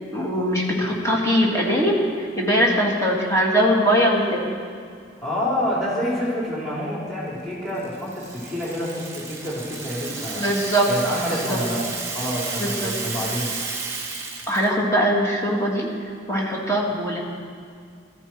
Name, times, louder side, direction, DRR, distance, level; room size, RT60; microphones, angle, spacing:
voice 1, 0.1-4.4 10.4-10.9 11.3-11.6 12.6-12.9 14.5-15.9 16.3-17.2, equal, 15° left, -3 dB, 2.3 m, -21 dB
voice 2, 5.2-10.5 10.9-11.8 12.1-13.5, equal, ahead, -6 dB, 3.9 m, -27 dB
Rattle (instrument), 7.8-14.7, right 4 dB, 15° right, 1.6 m, -32 dB
16.0 x 14.0 x 4.7 m, 2.3 s
head